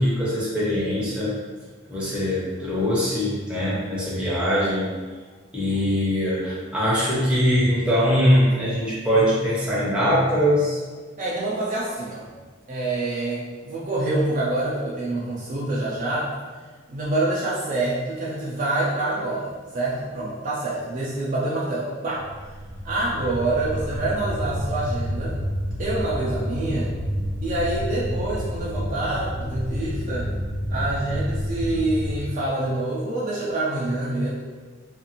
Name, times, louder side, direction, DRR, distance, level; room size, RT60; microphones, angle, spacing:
voice 1, 0.0-1.4 1.9-4.9 5.5-10.8, equal, 5° right, -8 dB, 0.7 m, -22 dB
voice 2, 11.2-12.3 12.7-16.3 16.9-22.2 22.8-25.4 25.8-26.9 27.4-30.2 30.7-34.3, right 2 dB, 40° right, -6 dB, 0.4 m, -26 dB
sound 1, 22.2-32.2, equal, 70° left, 0.7 m, -29 dB
2.5 x 2.5 x 2.8 m, 1.4 s
head